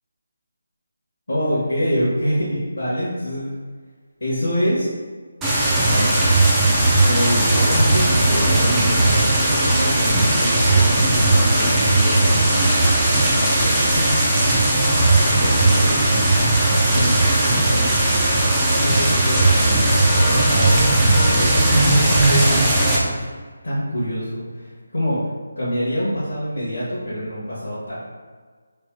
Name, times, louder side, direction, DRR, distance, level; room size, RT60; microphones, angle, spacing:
voice 1, 1.3-3.5 4.2-4.9 5.9-6.1 7.0-14.2 15.4-16.1 16.9-21.0 21.3-23.2 23.6-25.2 25.6-28.0, equal, 70° left, -10 dB, 1.3 m, -26 dB
sound 1, 5.4-23.0, right 2 dB, 10° right, 0.6 m, -17 dB
Piano, 20.1-22.6, left 2 dB, 75° right, 0.7 m, -31 dB
3.4 x 2.5 x 3.5 m, 1.5 s
figure-of-eight pair, 155°, 0 cm